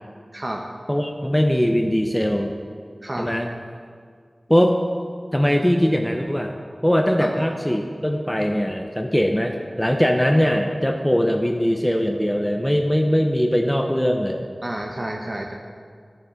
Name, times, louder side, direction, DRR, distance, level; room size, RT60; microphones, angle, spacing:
voice 1, 0.3-0.7 3.0-3.3 7.2-7.3 14.6-15.5, right 1 dB, 40° right, 1 dB, 0.8 m, -30 dB
voice 2, 0.9-2.5 3.2-3.5 4.5-4.8 5.3-6.5 6.8-14.4, equal, 10° left, 3 dB, 0.6 m, -21 dB
10.0 x 7.1 x 4.0 m, 2.1 s
wide cardioid pair, 40°, 0 cm